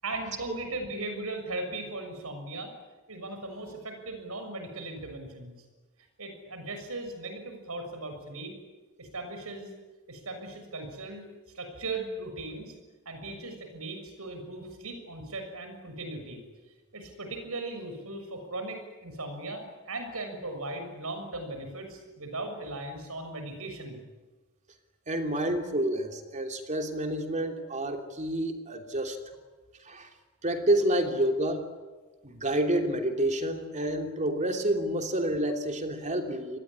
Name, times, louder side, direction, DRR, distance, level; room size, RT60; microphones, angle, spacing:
voice 1, 0.0-2.7 3.1-5.6 6.2-8.5 9.0-9.7 10.1-11.3 11.5-12.7 13.0-16.4 16.9-24.0, right 2 dB, 80° right, 6 dB, 6.7 m, -38 dB
voice 2, 25.1-29.2 29.8-30.1 30.4-31.7 32.2-36.6, right 1 dB, 35° right, 4 dB, 3.1 m, -29 dB
26.5 x 20.5 x 9.8 m, 1.3 s
head